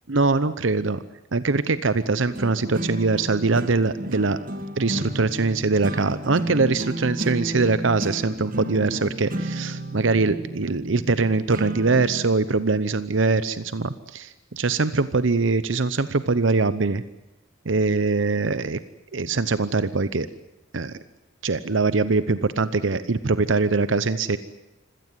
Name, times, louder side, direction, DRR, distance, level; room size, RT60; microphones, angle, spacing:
voice 1, 0.1-1.0 1.3-4.4 4.8-17.0 17.7-18.8 19.1-20.3 20.7-20.9 21.4-24.4, right 3 dB, 70° right, 14 dB, 0.8 m, -22 dB
sound 1, 2.3-12.2, right 1 dB, 45° right, 2.0 m, -32 dB
26.0 x 17.0 x 9.7 m, 0.93 s
head